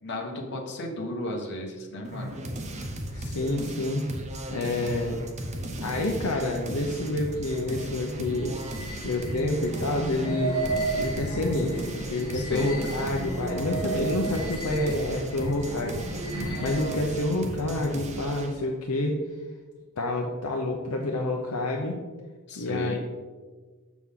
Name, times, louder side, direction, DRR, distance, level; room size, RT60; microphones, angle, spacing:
voice 1, 0.0-2.4 12.3-12.7 16.3-16.7 22.5-23.0, left 1 dB, 50° left, 0 dB, 1.2 m, -35 dB
sound 1, 2.0-18.6, right 1 dB, 30° right, 0.8 m, -36 dB
voice 2, 3.1-4.1 4.5-5.2 5.8-8.6 9.0-10.6 10.9-19.2 20.0-22.0 22.6-23.0, left 2 dB, 80° left, 1 dB, 0.7 m, -28 dB
sound 2, 7.4-17.2, right 3 dB, 85° right, 1.8 m, -34 dB
7.1 x 6.2 x 3.7 m, 1.4 s
head